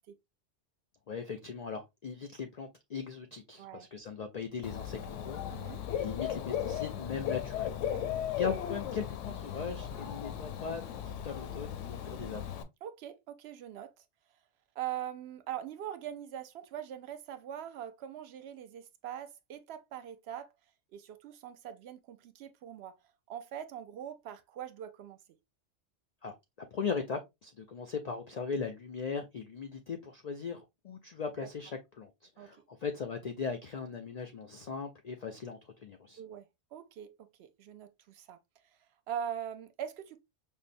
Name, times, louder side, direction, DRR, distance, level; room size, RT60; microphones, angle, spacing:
voice 1, 1.1-7.7 8.4-12.4 26.2-36.2, left 5 dB, 65° left, 0.4 m, -39 dB
voice 2, 3.6-3.9 5.5-5.8 7.9-8.2 12.8-14.0 14.8-20.5 20.9-22.9 23.3-25.2 31.4-31.5 32.4-32.6 36.2-38.4 38.6-40.2, right 10 dB, 65° right, 0.8 m, -42 dB
Dog / Bird, 4.6-12.6, left 10 dB, 85° left, 0.9 m, -36 dB
5.4 x 2.1 x 2.5 m
omnidirectional pair, 1.2 m